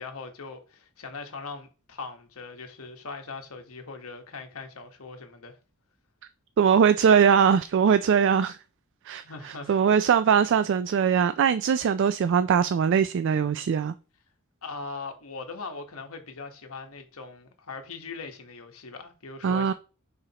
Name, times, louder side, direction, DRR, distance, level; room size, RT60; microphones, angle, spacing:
voice 1, 0.0-5.6 9.2-10.1 14.6-19.7, left 4 dB, 70° left, 1.3 m, -40 dB
voice 2, 6.6-8.6 9.1-13.9 19.4-19.7, right 7 dB, 55° right, 0.3 m, -21 dB
9.7 x 4.4 x 2.9 m
head